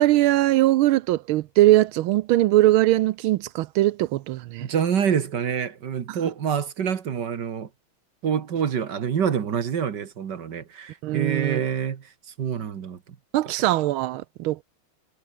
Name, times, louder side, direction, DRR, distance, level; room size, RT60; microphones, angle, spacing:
voice 1, 0.0-4.7 6.1-6.2 11.0-11.6 13.3-14.6, right 15 dB, 80° right, 1.4 m, -21 dB
voice 2, 4.6-7.7 8.2-12.0 12.4-13.0, right 7 dB, 55° right, 1.9 m, -26 dB
omnidirectional pair, 2.4 m